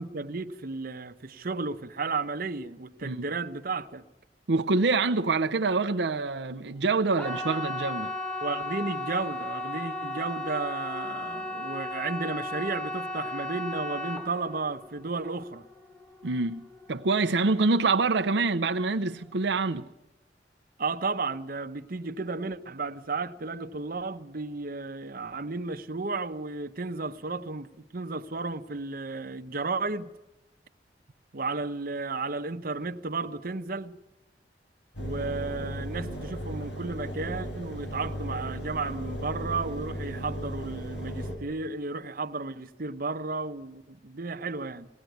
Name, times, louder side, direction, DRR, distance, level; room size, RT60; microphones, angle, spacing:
voice 1, 0.0-4.0 8.4-15.7 20.8-30.1 31.3-34.0 35.0-44.9, right 3 dB, 55° right, 0.9 m, -33 dB
voice 2, 4.5-8.1 16.2-19.9, right 3 dB, 80° right, 0.7 m, -26 dB
sound 1, 7.1-18.0 18.2-18.8 19.2-19.3, left 1 dB, 5° left, 1.3 m, -35 dB
Engine, 34.9-41.4, equal, 85° left, 4.8 m, -36 dB
19.5 x 16.5 x 9.3 m
head